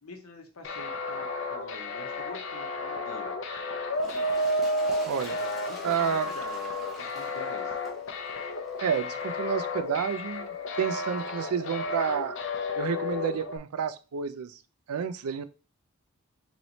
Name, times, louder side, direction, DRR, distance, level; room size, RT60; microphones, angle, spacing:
voice 1, 0.0-3.3 5.7-7.8, left 2 dB, 75° left, 5 dB, 0.9 m, -45 dB
sound 1, 0.6-13.6, left 2 dB, 55° left, 0.5 m, -32 dB
Toilet flush, 3.9-9.4 10.1-10.2, equal, ahead, 0.6 m, -48 dB
voice 2, 5.1-5.4 5.8-6.3 8.8-12.4 12.8-14.6 14.9-15.4, right 7 dB, 80° right, 11 dB, 0.4 m, -30 dB
3.1 x 3.0 x 4.0 m, 0.33 s
head